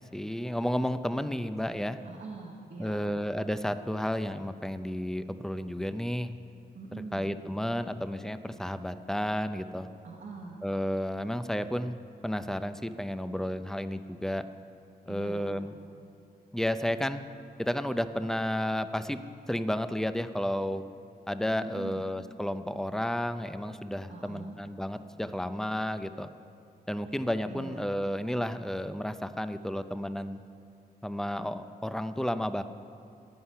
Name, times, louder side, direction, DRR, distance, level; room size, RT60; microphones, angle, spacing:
voice 1, 0.0-2.0 2.8-6.3 7.1-9.9 10.6-12.0 12.2-14.4 15.1-15.7 16.5-17.2 17.6-19.2 19.5-20.8 21.3-26.3 26.9-30.4 31.0-32.6, equal, 5° left, 10 dB, 0.5 m, -32 dB
voice 2, 2.0-3.1 6.7-7.4 10.0-10.6 15.1-15.6 21.6-22.0 24.1-24.6 27.5-27.9, right 3 dB, 65° right, -3 dB, 1.4 m, -43 dB
16.0 x 9.6 x 5.7 m, 2.5 s
wide cardioid pair, 90°, 17 cm